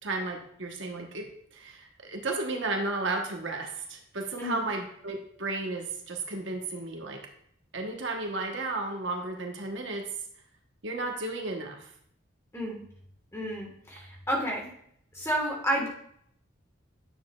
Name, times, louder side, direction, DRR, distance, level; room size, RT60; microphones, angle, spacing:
voice 1, 0.0-7.2 7.7-10.1 10.8-11.9, right 2 dB, 65° right, 2 dB, 1.1 m, -33 dB
voice 2, 13.3-14.7 15.1-15.9, equal, 15° left, -2 dB, 1.4 m, -30 dB
9.1 x 6.8 x 2.3 m, 0.68 s
head